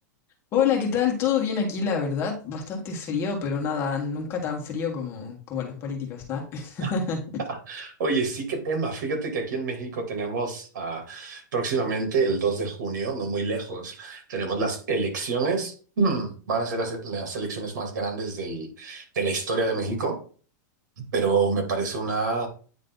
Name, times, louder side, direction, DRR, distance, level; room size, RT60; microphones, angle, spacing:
voice 1, 0.5-7.2, left 6 dB, 25° left, 0 dB, 1.6 m, -27 dB
voice 2, 7.7-20.2 21.1-22.5, right 4 dB, 80° right, 3 dB, 2.9 m, -27 dB
9.3 x 3.2 x 3.9 m, 0.39 s
supercardioid pair, 160°, 10 cm